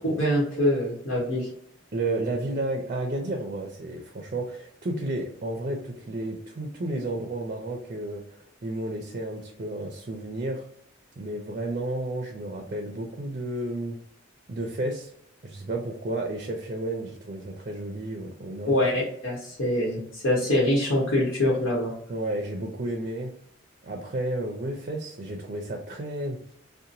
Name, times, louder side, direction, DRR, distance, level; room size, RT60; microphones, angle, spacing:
voice 1, 0.0-1.5 18.7-21.9, left 1 dB, 80° left, -6 dB, 1.1 m, -24 dB
voice 2, 1.9-10.6 11.2-14.0 14.5-15.1 15.4-18.8 22.1-23.3 23.8-26.4, right 1 dB, 40° right, 2 dB, 0.4 m, -32 dB
2.8 x 2.2 x 2.5 m, 0.68 s
head